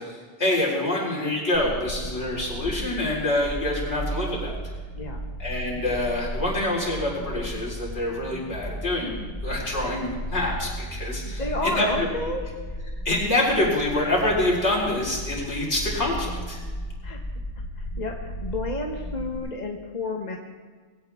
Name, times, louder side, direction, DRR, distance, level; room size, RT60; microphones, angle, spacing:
voice 1, 0.0-4.5 5.4-11.9 13.0-16.6, left 1 dB, 65° left, -4 dB, 4.4 m, -26 dB
sound 1, 1.5-19.4, equal, 85° left, 2.2 m, -35 dB
voice 2, 11.2-12.5 17.0-17.2 17.8-20.4, left 2 dB, 35° left, 1 dB, 1.2 m, -31 dB
21.5 x 16.5 x 3.5 m, 1.5 s
omnidirectional pair, 1.3 m